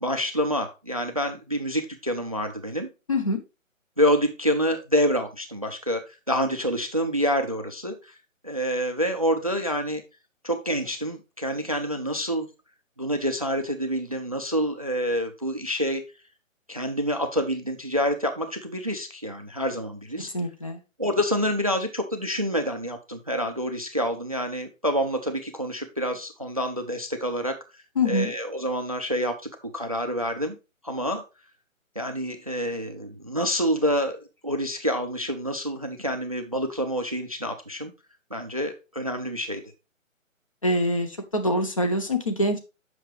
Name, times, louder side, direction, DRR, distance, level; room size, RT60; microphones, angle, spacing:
voice 1, 0.0-2.9 4.0-8.1 8.4-10.0 10.4-12.5 13.0-16.0 16.7-20.3 21.0-27.6 28.0-29.4 29.7-30.5 30.8-31.2 32.0-37.9 38.3-39.6, equal, 30° right, 8 dB, 0.4 m, -27 dB
voice 2, 3.1-3.4 20.2-20.8 28.0-28.3 40.6-42.6, left 1 dB, 25° left, 6 dB, 0.6 m, -25 dB
7.5 x 5.6 x 3.1 m, 0.28 s
figure-of-eight pair, 145°, 40 cm